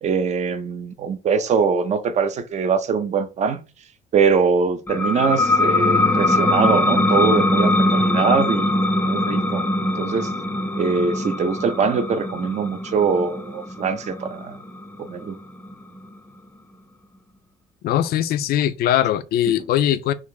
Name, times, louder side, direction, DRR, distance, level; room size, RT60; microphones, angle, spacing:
voice 1, 0.0-3.6 4.1-8.7 9.0-9.6 10.0-10.3 10.7-14.6 15.1-15.4, right 5 dB, 45° right, 0.6 m, -22 dB
sound 1, 4.9-16.1, left 2 dB, 10° left, 0.5 m, -22 dB
voice 2, 17.8-20.1, left 11 dB, 65° left, 0.4 m, -20 dB
3.7 x 2.4 x 3.2 m
cardioid pair, 110°, 17 cm